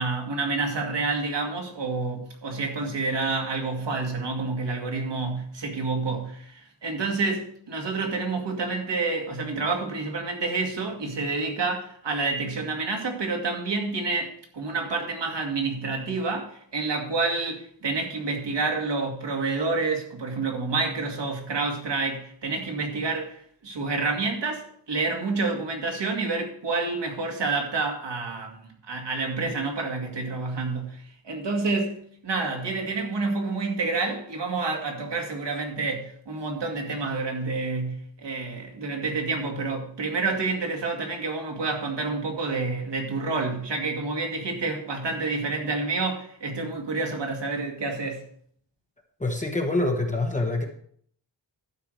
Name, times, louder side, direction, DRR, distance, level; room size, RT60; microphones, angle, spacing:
voice 1, 0.0-48.2, right 3 dB, 65° right, 2 dB, 2.4 m, -28 dB
voice 2, 49.2-50.7, left 2 dB, 15° left, 1 dB, 1.2 m, -25 dB
12.0 x 4.9 x 6.5 m, 0.62 s
wide cardioid pair, 145°, 44 cm